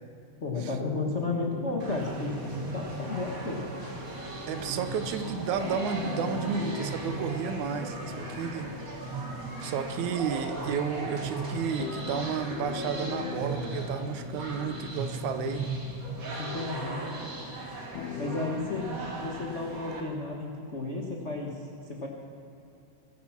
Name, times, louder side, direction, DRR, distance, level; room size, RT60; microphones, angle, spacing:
voice 1, 0.4-3.6 16.4-17.0 18.2-18.9 19.1-22.1, left 3 dB, 75° left, -1 dB, 0.6 m, -33 dB
sound 1, 0.5-19.0, left 7 dB, 90° left, 2.5 m, -42 dB
sound 2, 1.8-20.0, right 2 dB, 35° right, 1.5 m, -37 dB
voice 2, 4.5-8.7 9.6-15.7, right 7 dB, 75° right, 8 dB, 2.1 m, -32 dB
22.5 x 10.0 x 5.9 m, 2.8 s
omnidirectional pair, 3.7 m